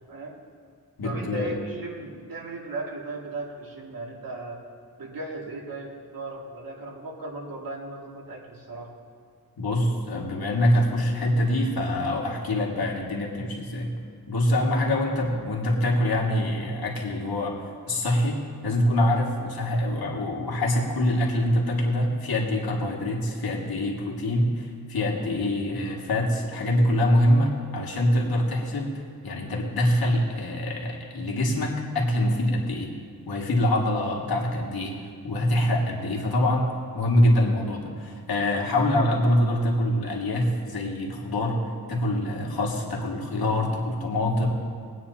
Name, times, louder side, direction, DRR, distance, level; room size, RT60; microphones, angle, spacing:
voice 1, 0.1-0.4 1.0-4.6 5.0-8.9, right 3 dB, 65° right, -1 dB, 2.3 m, -37 dB
voice 2, 1.0-1.5 9.6-13.9 14.3-17.5 17.8-28.9 29.2-32.9 33.3-35.0 35.2-41.6 41.9-44.5, left 1 dB, 75° left, -2 dB, 2.1 m, -24 dB
22.0 x 9.3 x 2.8 m, 2.2 s
cardioid pair, 75°, 37 cm